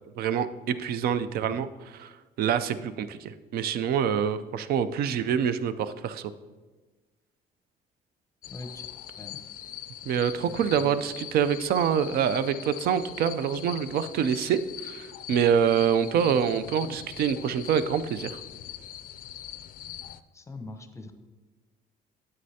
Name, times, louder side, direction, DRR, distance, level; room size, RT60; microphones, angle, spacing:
voice 1, 0.2-6.3 10.1-18.4, right 8 dB, 65° right, 13 dB, 0.5 m, -26 dB
sound 1, 8.4-20.2, left 11 dB, 55° left, 0.4 m, -42 dB
voice 2, 8.5-8.9 9.2-9.4 10.4-10.9 20.3-21.1, left 2 dB, 15° left, 7 dB, 0.7 m, -42 dB
9.6 x 7.7 x 2.8 m, 1.2 s
cardioid pair, 110°, 17 cm